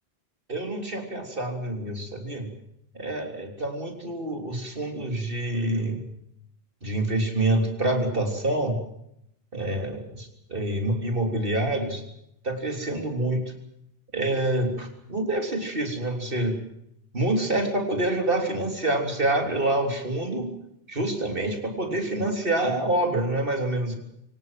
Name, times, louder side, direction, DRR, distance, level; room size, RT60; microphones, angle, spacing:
voice 1, 0.5-2.5 2.9-6.0 6.8-8.8 9.5-12.0 12.4-13.5 14.1-16.6 17.1-20.6 20.9-23.9, right 1 dB, 60° right, 4 dB, 3.8 m, -27 dB
24.0 x 18.5 x 7.7 m, 0.76 s
omnidirectional pair, 1.0 m